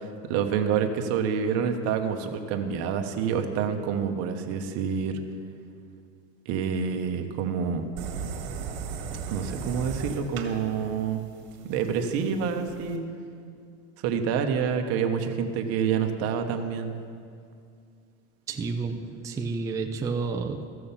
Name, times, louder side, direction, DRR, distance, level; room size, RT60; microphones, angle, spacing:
voice 1, 0.0-5.2 6.5-7.8 9.3-11.2 11.6-13.0 14.0-17.0, right 7 dB, 50° right, 5 dB, 1.1 m, -27 dB
sound 1, 8.0-13.0, right 5 dB, 65° right, 1.8 m, -37 dB
voice 2, 18.5-20.6, right 4 dB, 10° right, 4 dB, 0.4 m, -30 dB
14.5 x 6.3 x 7.2 m, 2.4 s
supercardioid pair, 150°, 32 cm